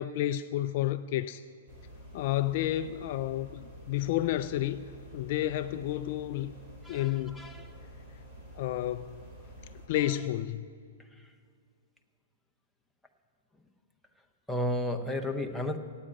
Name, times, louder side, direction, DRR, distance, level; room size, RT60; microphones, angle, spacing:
voice 1, 0.0-1.4 2.1-4.8 5.1-6.5 6.9-7.4 8.6-9.2 9.9-10.7, left 13 dB, 40° left, 11 dB, 0.4 m, -30 dB
sound 1, 1.7-9.9, equal, 25° right, 3.5 m, -49 dB
voice 2, 6.8-7.8 14.5-15.8, left 1 dB, ahead, 2 dB, 0.7 m, -33 dB
15.0 x 8.7 x 8.6 m, 2.2 s
hypercardioid pair, 160°, 0 cm